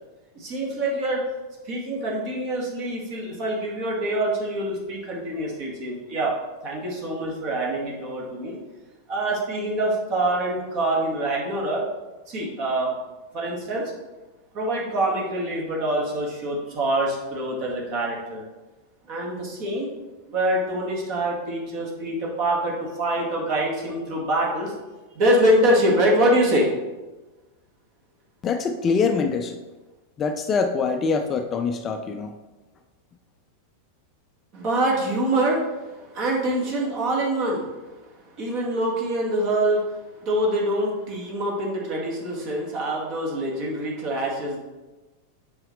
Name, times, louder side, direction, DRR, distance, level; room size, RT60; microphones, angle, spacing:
voice 1, 0.3-1.2 1.6-6.3 6.6-8.6 9.1-11.8 12.3-12.9 13.3-13.9 14.5-18.4 19.1-19.9 20.3-24.7 25.1-26.7 34.5-37.7 38.0-44.6, right 1 dB, 40° right, -2 dB, 1.8 m, -25 dB
voice 2, 28.4-29.6 30.2-32.4, left 5 dB, 25° left, 6 dB, 0.5 m, -24 dB
7.5 x 5.4 x 3.2 m, 1.2 s
figure-of-eight pair, 90°, 0 cm